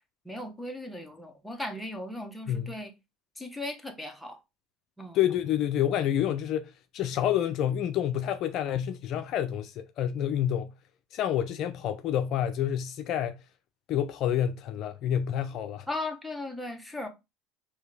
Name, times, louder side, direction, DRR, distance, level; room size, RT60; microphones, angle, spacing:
voice 1, 0.2-2.9 3.4-4.4 5.0-5.2 15.9-17.1, left 2 dB, 5° left, 1.0 m, -37 dB
voice 2, 5.1-10.7 11.1-13.4 13.9-15.9, left 10 dB, 55° left, 0.5 m, -28 dB
4.5 x 2.8 x 3.4 m
supercardioid pair, 100°, 0 cm